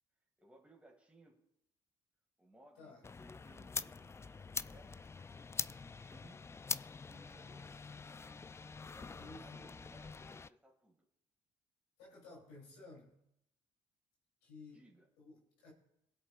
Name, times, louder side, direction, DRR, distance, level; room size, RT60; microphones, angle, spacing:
voice 1, 0.4-1.3 2.4-5.6 6.1-6.5 7.0-7.9 8.8-11.1 14.7-15.1, right 1 dB, 10° right, -3 dB, 2.0 m, -63 dB
sound 1, 3.0-10.5, left 4 dB, 20° left, 0.3 m, -44 dB
voice 2, 9.2-9.7 12.0-13.1 14.4-14.8 15.2-15.7, left 2 dB, 90° left, -1 dB, 3.0 m, -55 dB
21.5 x 8.0 x 2.4 m, 0.81 s
supercardioid pair, 60°, 13 cm